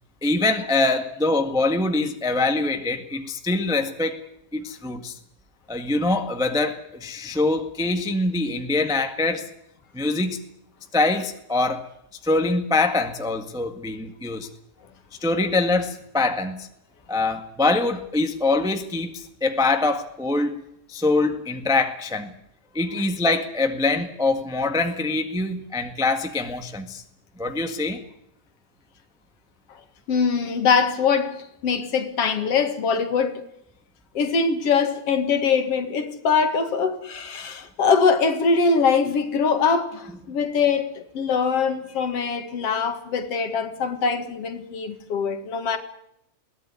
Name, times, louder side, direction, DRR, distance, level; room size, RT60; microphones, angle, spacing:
voice 1, 0.2-4.2 4.5-5.1 5.7-9.5 9.9-10.4 10.9-11.8 12.2-14.5 15.2-16.7 17.1-20.6 20.9-22.3 22.7-27.0 27.4-28.0, left 2 dB, 5° right, 5 dB, 0.6 m, -24 dB
voice 2, 30.1-33.4 34.1-45.8, left 5 dB, 55° left, 7 dB, 2.7 m, -23 dB
22.0 x 16.5 x 9.8 m, 0.78 s
omnidirectional pair, 3.4 m